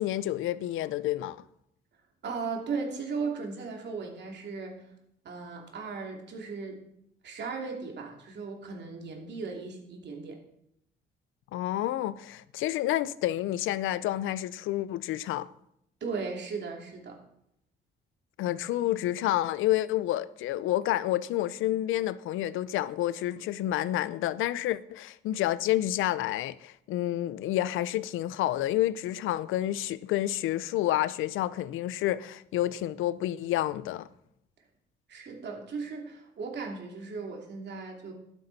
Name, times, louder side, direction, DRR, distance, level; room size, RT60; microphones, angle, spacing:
voice 1, 0.0-1.4 11.5-15.5 18.4-34.1, left 14 dB, 85° left, 0.5 m, -29 dB
voice 2, 2.2-4.8 5.2-6.8 7.2-10.4 16.0-17.2 35.1-38.1, right 4 dB, 60° right, 2.8 m, -37 dB
11.5 x 10.0 x 4.1 m
cardioid pair, 90°, 20 cm